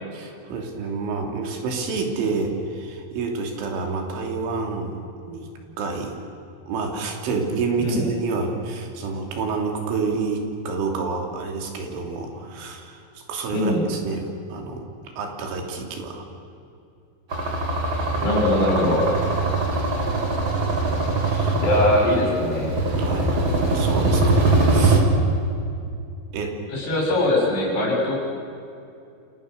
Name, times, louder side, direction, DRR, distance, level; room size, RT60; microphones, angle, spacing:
voice 1, 0.1-5.5 5.8-6.2 6.7-14.8 15.2-16.3 19.3-19.4 21.2-21.6 21.9-22.0 23.0-23.3 23.7-25.0 26.3-26.6, right 4 dB, 75° right, 2 dB, 5.3 m, -28 dB
voice 2, 13.5-13.8 18.2-19.0 21.6-22.8 26.7-28.2, left 1 dB, 60° left, -2 dB, 8.2 m, -21 dB
sound 1, 17.3-25.0, right 2 dB, 30° right, 3.3 m, -22 dB
29.5 x 26.0 x 6.8 m, 2.6 s
omnidirectional pair, 5.6 m